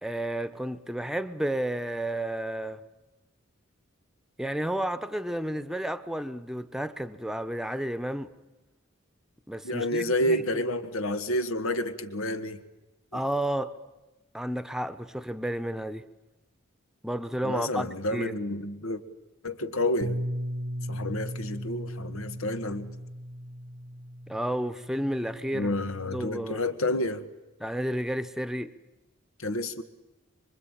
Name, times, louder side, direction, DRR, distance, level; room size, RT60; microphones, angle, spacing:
voice 1, 0.0-2.8 4.4-8.3 9.5-10.4 13.1-13.7 14.3-16.0 17.0-18.3 24.3-25.7 26.1-26.6 27.6-28.7, right 1 dB, ahead, 1.0 m, -31 dB
voice 2, 9.6-12.6 13.1-13.2 17.4-19.0 19.4-20.2 20.9-22.9 25.5-27.3 29.4-29.8, left 1 dB, 90° left, 1.7 m, -29 dB
Bass guitar, 20.0-26.3, equal, 55° right, 1.0 m, -37 dB
25.5 x 23.5 x 9.0 m
head